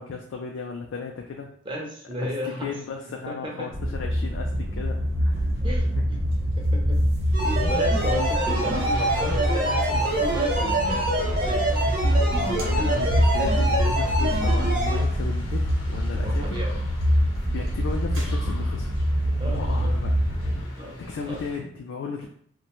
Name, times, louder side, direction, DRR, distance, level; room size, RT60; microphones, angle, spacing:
voice 1, 0.0-1.5 2.6-5.5 12.3-16.6 17.5-18.9 19.4-20.1 21.0-22.3, left 4 dB, 70° left, 1 dB, 0.3 m, -35 dB
voice 2, 1.6-2.7 3.3-3.7 5.6-6.2 6.6-7.4 7.7-11.6 16.2-16.7 19.4-19.9 20.8-21.4, left 1 dB, 25° right, -1 dB, 0.5 m, -34 dB
sound 1, 3.7-20.6, equal, 75° right, 0.8 m, -25 dB
sound 2, 7.3-15.0, right 1 dB, 45° right, 0.9 m, -26 dB
sound 3, 8.2-21.6, left 1 dB, 85° left, 0.7 m, -43 dB
2.4 x 2.1 x 2.9 m, 0.63 s
head